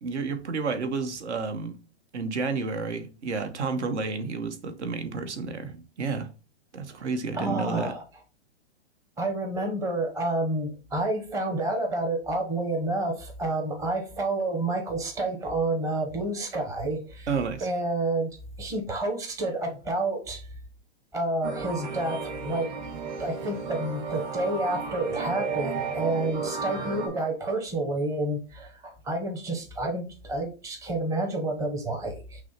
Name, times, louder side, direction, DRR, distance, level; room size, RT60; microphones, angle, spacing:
voice 1, 0.0-1.8 2.1-6.3 6.7-7.9 17.3-17.7, right 4 dB, 75° right, 1.0 m, -31 dB
voice 2, 7.3-8.0 9.2-17.3 17.6-20.4 21.1-22.7 23.2-32.4, right 2 dB, 10° right, 0.7 m, -29 dB
sound 1, 21.4-27.1, right 5 dB, 40° right, 1.2 m, -33 dB
6.0 x 2.1 x 4.2 m
hypercardioid pair, 145°, 35 cm